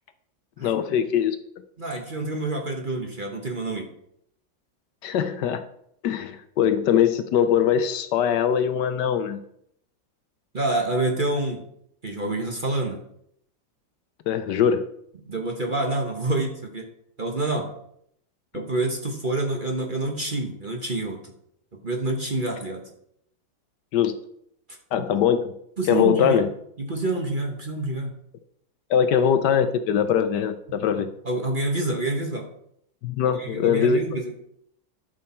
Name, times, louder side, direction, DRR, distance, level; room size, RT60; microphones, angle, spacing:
voice 1, 0.6-1.4 5.0-5.6 6.0-9.4 14.3-14.9 23.9-24.1 24.9-25.5 25.9-26.5 28.9-31.1 33.0-34.0, left 8 dB, 70° left, 10 dB, 1.2 m, -22 dB
voice 2, 1.8-3.9 10.5-11.6 12.0-13.0 15.3-16.9 17.2-17.7 18.5-21.2 21.8-22.8 25.8-26.4 26.8-28.1 31.2-32.5 33.2-34.3, right 2 dB, 30° right, 2 dB, 1.1 m, -27 dB
12.0 x 6.5 x 4.3 m, 0.71 s
omnidirectional pair, 2.0 m